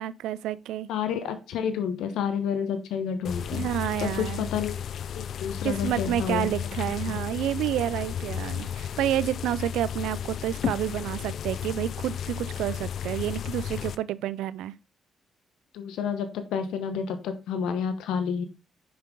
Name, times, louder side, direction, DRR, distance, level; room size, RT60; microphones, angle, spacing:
voice 1, 0.0-0.9 3.5-4.5 5.6-14.7, right 12 dB, 85° right, 0.4 m, -29 dB
voice 2, 0.9-3.6 4.0-4.8 5.1-6.8 7.1-7.2 15.7-18.5, left 7 dB, 85° left, 1.1 m, -30 dB
sound 1, 3.2-14.0, left 8 dB, 65° left, 0.4 m, -33 dB
7.9 x 5.2 x 3.8 m
cardioid pair, 70°, 0 cm